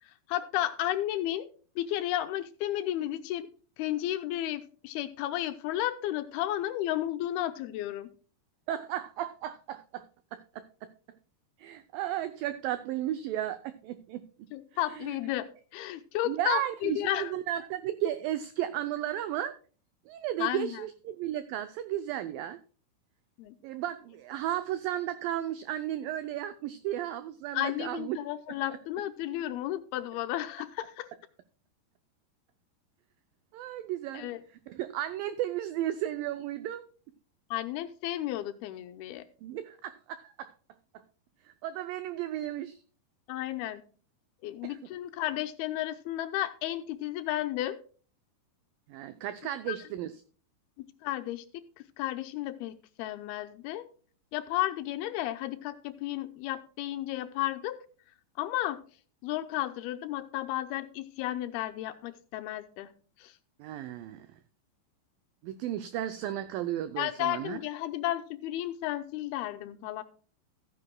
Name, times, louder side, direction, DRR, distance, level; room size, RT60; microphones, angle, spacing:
voice 1, 0.3-1.5 1.8-3.5 3.8-8.1 14.5-15.5 15.7-17.3 20.4-20.8 23.4-23.5 27.5-31.1 34.1-34.4 37.5-39.2 43.3-43.8 44.4-47.8 49.7-49.8 51.0-51.4 52.0-53.8 54.3-57.8 58.4-58.8 59.2-62.9 63.2-63.3 67.0-70.0, left 14 dB, 80° left, 10 dB, 2.5 m, -33 dB
voice 2, 8.7-10.1 10.3-10.9 11.6-14.3 14.9-15.2 16.3-19.6 20.1-22.6 23.6-28.2 33.5-34.3 34.7-36.9 39.4-40.5 41.5-42.8 44.6-44.8 48.9-50.2 63.6-64.3 65.4-67.6, right 12 dB, 85° right, 12 dB, 2.0 m, -34 dB
14.5 x 9.7 x 2.2 m, 0.40 s
omnidirectional pair, 4.7 m